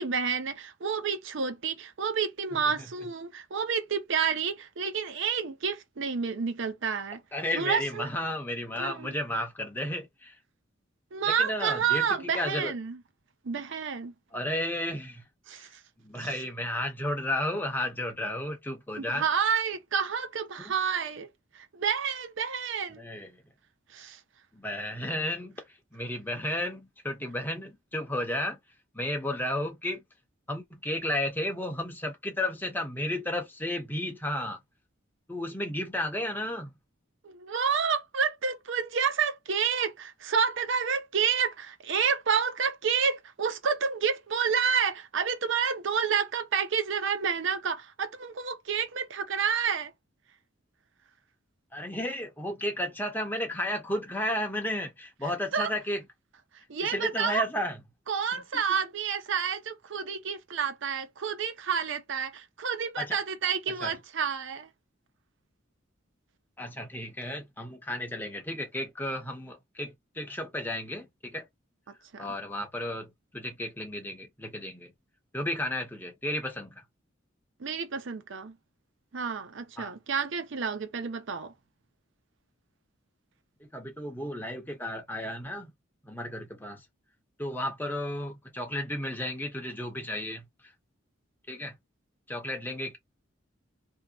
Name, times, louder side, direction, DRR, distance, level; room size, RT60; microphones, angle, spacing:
voice 1, 0.0-7.2 7.5-8.1 8.8-9.1 11.1-13.0 13.4-14.1 15.5-15.7 16.2-16.3 18.9-21.3 21.5-23.0 23.9-24.2 37.2-49.9 55.5-55.7 56.7-57.4 58.1-64.7 72.1-72.3 77.6-78.6 79.1-81.5, right 6 dB, 65° right, 0.6 m, -29 dB
voice 2, 7.3-10.4 11.2-12.7 14.3-15.2 16.0-19.2 23.0-23.3 24.5-25.6 25.9-28.6 28.9-30.0 30.5-34.6 35.3-36.7 51.7-56.0 56.8-57.8 58.3-58.4 63.0-63.2 63.8-63.9 66.6-71.5 72.2-74.9 75.3-76.8 79.8-79.9 83.7-85.7 86.0-86.8 87.4-90.4 91.5-91.8 92.3-93.0, left 1 dB, 10° left, 0.8 m, -33 dB
2.8 x 2.1 x 2.2 m
head